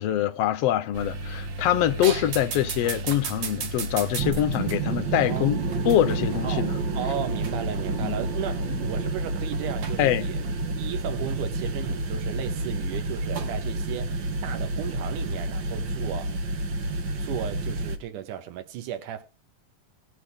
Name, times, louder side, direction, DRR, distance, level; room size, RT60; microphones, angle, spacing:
voice 1, 0.0-5.6 5.8-6.7 8.0-8.1 10.0-10.2, left 12 dB, 70° left, 1.6 m, -24 dB
sound 1, 0.9-18.0, right 3 dB, 55° right, 1.4 m, -30 dB
voice 2, 5.3-5.7 6.4-6.7 6.9-10.4 10.8-16.4 17.2-19.2, right 10 dB, 85° right, 2.6 m, -35 dB
17.5 x 6.4 x 5.1 m
omnidirectional pair, 3.5 m